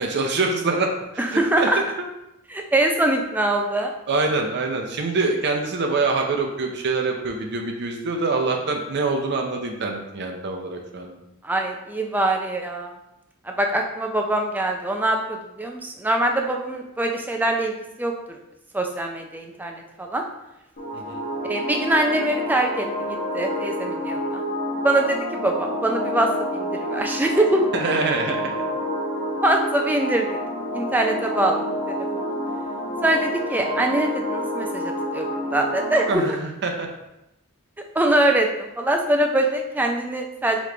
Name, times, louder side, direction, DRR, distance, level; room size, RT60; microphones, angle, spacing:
voice 1, 0.0-1.2 1.6-1.7 4.1-11.2 20.9-21.2 27.7-28.5 36.1-36.9, right 3 dB, 50° right, 3 dB, 0.6 m, -25 dB
voice 2, 1.2-1.8 2.5-3.9 11.4-12.9 13.5-18.4 18.7-20.2 21.5-22.9 23.3-24.4 24.8-27.6 29.4-30.3 30.7-31.6 31.9-32.2 33.0-35.3 35.5-36.4 37.9-40.6, right 1 dB, 10° right, 2 dB, 0.4 m, -23 dB
sound 1, 20.8-36.1, equal, 50° left, 1.0 m, -28 dB
3.4 x 3.1 x 3.8 m, 0.90 s
head